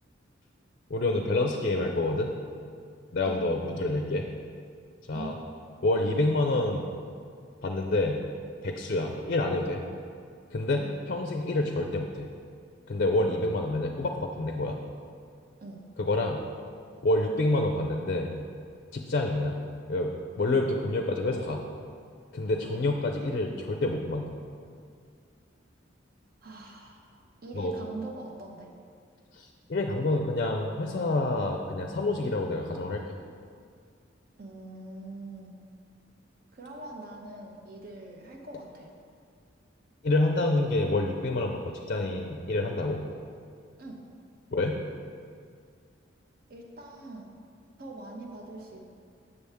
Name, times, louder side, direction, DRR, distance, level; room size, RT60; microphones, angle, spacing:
voice 1, 0.9-2.4 3.1-4.3 5.1-5.3 5.8-6.9 7.6-8.2 8.6-9.8 10.5-12.3 12.9-14.8 16.0-16.4 17.0-18.3 18.9-19.6 19.9-21.6 22.3-24.3 27.5-27.7 29.3-33.0 40.0-43.0 44.5-44.8, left 2 dB, 45° left, 3 dB, 0.4 m, -28 dB
voice 2, 26.4-28.7 34.4-35.6 36.5-38.9 43.8-44.0 46.5-47.3 47.8-48.8, right 2 dB, 50° right, 1 dB, 0.9 m, -43 dB
6.9 x 6.8 x 3.4 m, 2.2 s
head